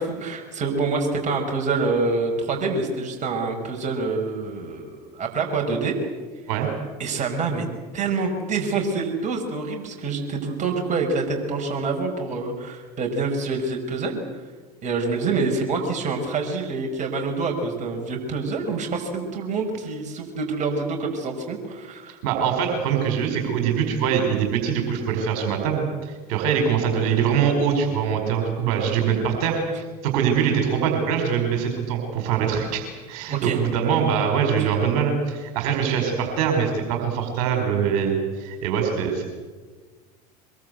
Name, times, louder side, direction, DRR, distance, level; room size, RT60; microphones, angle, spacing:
voice 1, 0.0-5.9 7.0-7.7 7.9-14.2 14.8-22.2 33.3-33.6, right 4 dB, 35° right, 2 dB, 5.3 m, -26 dB
voice 2, 22.2-29.6 30.0-39.3, right 7 dB, 60° right, 4 dB, 4.9 m, -23 dB
24.0 x 22.5 x 8.1 m, 1.4 s
figure-of-eight pair, 75°, 21 cm